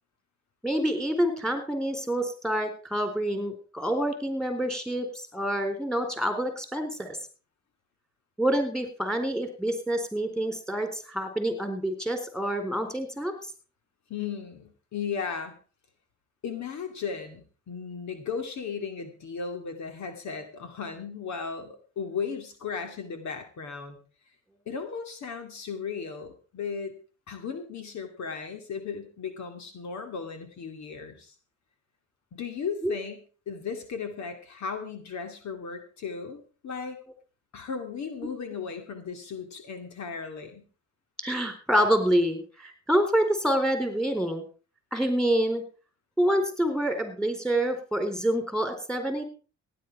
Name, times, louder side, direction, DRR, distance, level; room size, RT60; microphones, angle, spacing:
voice 1, 0.6-7.2 8.4-13.3 32.8-33.0 41.2-44.5 44.9-45.6 46.2-49.2, right 1 dB, ahead, 7 dB, 4.1 m, -27 dB
voice 2, 14.1-15.6 16.4-24.0 24.7-26.9 27.3-31.3 32.3-33.2 33.5-37.0 37.5-40.6, left 6 dB, 65° left, 7 dB, 2.4 m, -36 dB
16.0 x 10.0 x 4.7 m, 0.37 s
cardioid pair, 90°, 30 cm